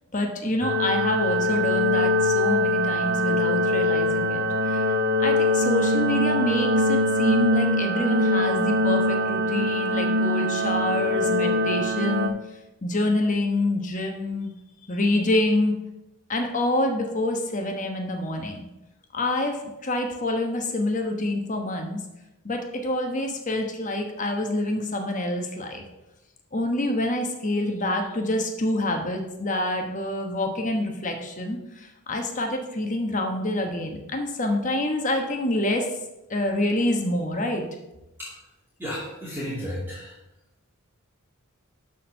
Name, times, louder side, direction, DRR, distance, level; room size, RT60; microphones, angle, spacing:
voice 1, 0.1-4.9 5.2-12.3 12.8-14.5 14.9-15.8 16.3-18.7 19.1-22.0 22.4-25.8 26.5-36.0 36.3-37.7, left 1 dB, 35° left, 3 dB, 1.1 m, -27 dB
sound 1, 0.6-12.3, left 1 dB, 50° right, 0.9 m, -23 dB
voice 2, 38.8-40.2, equal, 10° right, -8 dB, 2.4 m, -33 dB
11.5 x 4.4 x 5.7 m, 0.96 s
head